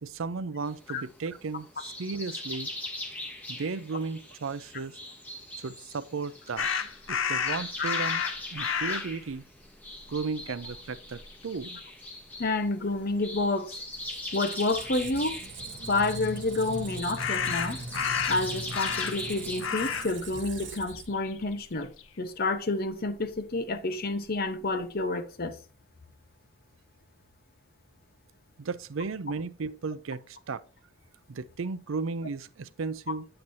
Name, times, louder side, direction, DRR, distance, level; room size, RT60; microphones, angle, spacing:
voice 1, 0.0-2.7 3.5-5.0 5.6-6.7 7.1-8.2 8.5-9.4 10.1-11.8 28.6-30.6 31.3-33.3, right 4 dB, 85° right, 0.5 m, -35 dB
sound 1, 0.6-19.6, left 1 dB, 10° left, 1.5 m, -41 dB
sound 2, 6.6-9.1 9.9-10.1 10.4-11.3 17.2-19.3 19.6-20.1 20.4-22.0, left 7 dB, 85° left, 0.7 m, -31 dB
voice 2, 12.4-13.8 14.3-15.4 15.9-17.8 18.3-21.9 22.2-25.6, left 2 dB, 50° left, 0.9 m, -29 dB
Squeak, 13.8-21.5, right 3 dB, 65° right, 1.0 m, -41 dB
8.7 x 7.8 x 2.7 m
head